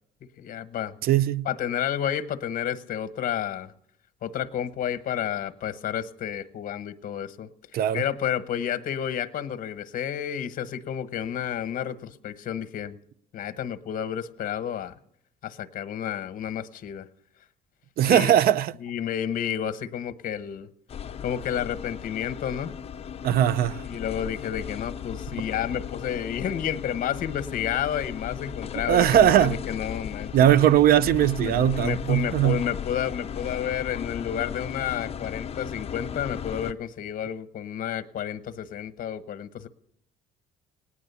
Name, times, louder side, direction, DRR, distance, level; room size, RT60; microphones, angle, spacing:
voice 1, 0.4-0.9 1.5-3.7 4.2-7.5 7.9-13.0 13.3-14.9 15.4-17.1 18.1-18.3 18.8-20.7 21.2-22.7 23.9-30.7 31.4-39.7, left 9 dB, 55° left, 1.0 m, -31 dB
voice 2, 1.0-1.5 7.7-8.0 18.0-18.7 23.2-23.8 28.9-29.6 30.3-32.6, right 11 dB, 60° right, 0.5 m, -20 dB
sound 1, 20.9-36.7, left 8 dB, 35° left, 0.8 m, -36 dB
18.5 x 9.8 x 6.9 m
cardioid pair, 110°, 17 cm